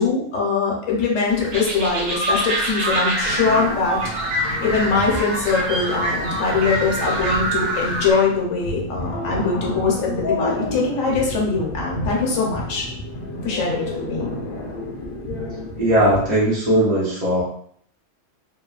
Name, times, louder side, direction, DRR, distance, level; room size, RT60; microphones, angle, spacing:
voice 1, 0.0-4.0 4.6-12.9 13.4-14.3, left 4 dB, 80° left, -2 dB, 1.2 m, -22 dB
sound 1, 1.3-8.1, right 1 dB, 80° right, 1.1 m, -25 dB
sound 2, 3.2-16.4, left 1 dB, 55° left, 0.7 m, -31 dB
voice 2, 15.8-17.4, right 1 dB, 35° right, -8 dB, 0.7 m, -18 dB
3.1 x 2.2 x 2.3 m, 0.62 s
omnidirectional pair, 1.3 m